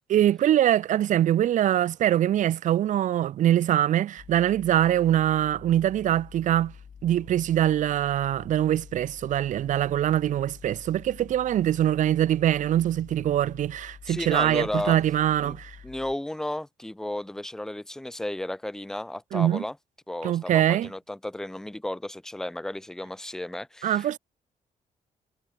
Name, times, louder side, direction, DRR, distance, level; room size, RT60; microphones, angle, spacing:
voice 1, 0.1-6.7 7.0-15.8 19.3-19.6 20.2-20.9 23.8-24.2, right 11 dB, 65° right, 0.5 m, -23 dB
sound 1, 4.2-16.2, left 7 dB, 45° left, 1.5 m, -48 dB
voice 2, 14.1-15.0 15.4-15.6 15.8-19.8 20.1-24.2, left 1 dB, 5° left, 0.4 m, -33 dB
cardioid pair, 90°, 14 cm